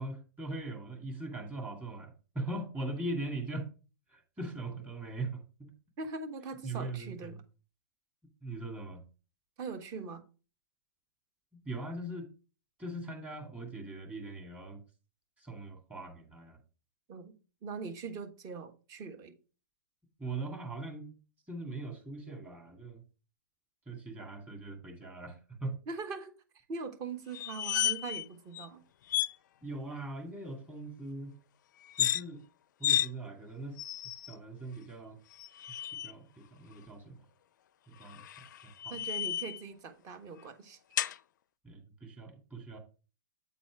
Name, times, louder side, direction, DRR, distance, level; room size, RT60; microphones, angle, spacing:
voice 1, 0.0-3.7 4.1-5.7 6.6-7.4 8.4-9.0 11.5-12.3 12.8-14.8 15.4-16.6 20.2-21.1 21.5-23.0 23.9-25.8 29.6-31.4 32.0-32.4 32.8-33.8 34.3-35.2 36.0-37.2 37.9-38.2 38.6-39.0 41.6-42.8, right 2 dB, 15° right, 3 dB, 2.2 m, -40 dB
voice 2, 6.0-7.4 9.6-10.2 17.1-17.3 17.6-19.3 25.9-26.3 26.7-28.8 38.9-40.8, right 4 dB, 35° right, 8 dB, 1.4 m, -41 dB
sound 1, 27.3-28.2 28.5-28.7 29.1-29.3 31.8-32.2 32.8-33.1 33.8-34.3 35.3-36.1 38.0-39.6 41.0-41.2, left 11 dB, 65° left, 0.4 m, -32 dB
8.3 x 4.2 x 4.7 m, 0.34 s
hypercardioid pair, 130°, 11 cm